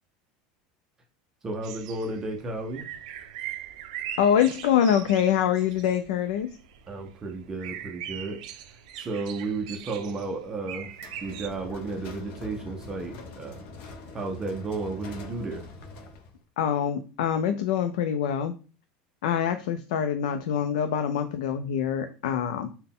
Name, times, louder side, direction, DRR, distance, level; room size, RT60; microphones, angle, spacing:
voice 1, 1.4-2.9 6.9-11.0 11.2-15.7, right 3 dB, 15° right, 2 dB, 0.5 m, -33 dB
sound 1, 1.6-11.5, right 10 dB, 90° right, 0.4 m, -41 dB
voice 2, 4.2-6.5 16.6-18.5 19.2-22.7, left 9 dB, 90° left, 7 dB, 0.4 m, -25 dB
sound 2, 10.9-16.4, left 3 dB, 45° left, 0.6 m, -43 dB
3.9 x 2.1 x 3.6 m, 0.36 s
supercardioid pair, 170°, 4 cm